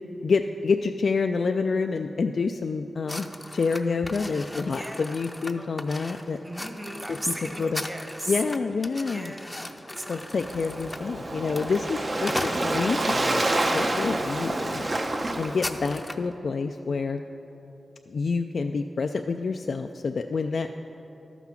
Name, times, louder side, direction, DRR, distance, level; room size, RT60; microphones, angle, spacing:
voice 1, 0.2-3.3 3.5-6.4 7.1-7.2 7.6-7.8 8.3-9.3 10.1-14.9 15.4-17.2 18.1-20.7, left 4 dB, 70° left, 6 dB, 0.3 m, -28 dB
sound 1, 3.1-13.2 13.8-14.0 14.4-14.6 14.8-16.3, left 1 dB, 20° left, 0.6 m, -38 dB
voice 2, 4.6-5.2 6.4-8.4 8.9-10.3, right 1 dB, 20° right, 4 dB, 1.2 m, -36 dB
Waves surf, 10.3-16.0, right 2 dB, 45° right, 0.8 m, -28 dB
12.5 x 6.0 x 5.8 m, 2.9 s
cardioid pair, 60°, 0 cm